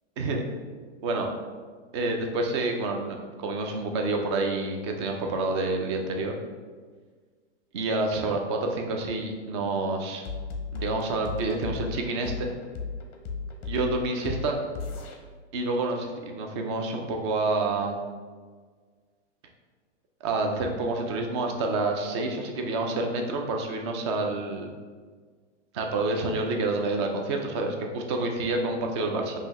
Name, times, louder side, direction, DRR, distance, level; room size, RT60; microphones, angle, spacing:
voice 1, 1.0-1.3 1.9-6.3 7.7-10.3 10.7-12.5 13.6-14.6 15.5-18.0 20.2-24.7 25.7-29.3, right 2 dB, 25° right, 3 dB, 0.3 m, -28 dB
sound 1, 10.2-15.2, left 5 dB, 30° left, 0.6 m, -35 dB
5.3 x 2.7 x 3.0 m, 1.5 s
hypercardioid pair, 140°, 36 cm